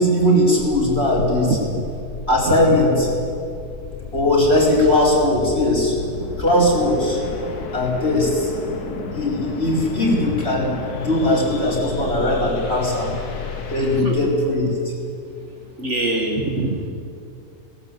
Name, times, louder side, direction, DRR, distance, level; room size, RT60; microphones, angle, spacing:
voice 1, 0.0-1.5 2.3-3.1 4.1-5.9 6.4-7.2 7.7-8.5 9.1-13.1 13.7-14.7, left 1 dB, 40° left, -3 dB, 4.9 m, -19 dB
sound 1, 0.6-14.0, left 5 dB, 70° left, 2.0 m, -32 dB
voice 2, 1.2-1.6 2.5-2.8 13.1-13.2 14.0-14.2 15.8-16.9, right 2 dB, 45° right, 2 dB, 2.0 m, -24 dB
18.5 x 18.0 x 8.4 m, 2.6 s
omnidirectional pair, 1.7 m